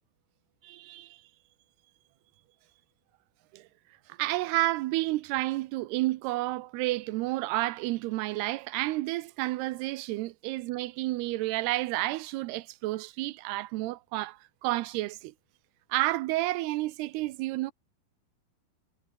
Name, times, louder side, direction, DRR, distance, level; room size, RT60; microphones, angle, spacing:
voice 1, 0.6-1.2 3.5-3.7 4.1-15.3 15.9-17.7, right 18 dB, 85° right, 2.8 m, -30 dB
omnidirectional pair, 4.6 m